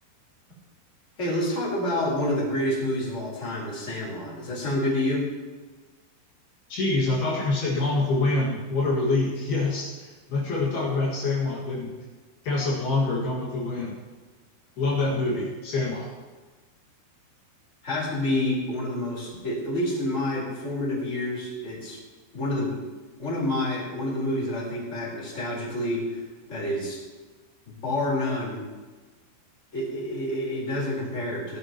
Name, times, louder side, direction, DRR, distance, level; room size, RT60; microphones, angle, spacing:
voice 1, 1.2-5.3 17.8-22.0 22.3-22.8 23.2-26.2 26.5-27.0 27.7-28.6 29.7-31.6, left 1 dB, 15° left, -6 dB, 4.4 m, -28 dB
voice 2, 6.7-11.9 12.4-14.0 14.8-16.1, left 2 dB, 60° left, -6 dB, 3.9 m, -26 dB
19.5 x 12.0 x 3.1 m, 1.3 s
omnidirectional pair, 5.3 m